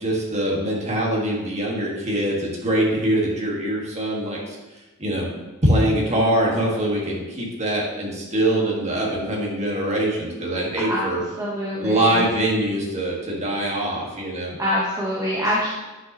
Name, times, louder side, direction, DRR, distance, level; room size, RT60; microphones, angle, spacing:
voice 1, 0.0-4.6 5.0-5.3 5.6-11.2 11.8-14.6, right 1 dB, 30° right, -3 dB, 1.7 m, -23 dB
voice 2, 10.8-11.1 11.4-12.2 14.6-15.7, equal, 15° right, -7 dB, 1.1 m, -25 dB
9.8 x 5.4 x 3.0 m, 1.1 s
head